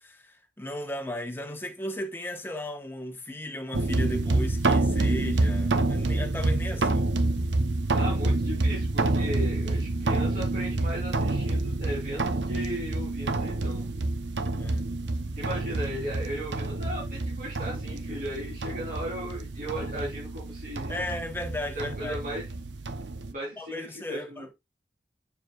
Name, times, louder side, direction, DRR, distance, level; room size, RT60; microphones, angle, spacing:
voice 1, 0.0-7.1 14.6-14.9 20.9-22.2 23.6-24.5, left 1 dB, 15° left, 1.1 m, -36 dB
sound 1, 3.7-23.3, right 2 dB, 90° right, 0.8 m, -28 dB
voice 2, 7.9-13.9 15.4-21.0 21.8-22.5 23.3-24.5, equal, 50° right, 3.6 m, -36 dB
7.4 x 7.0 x 2.4 m
head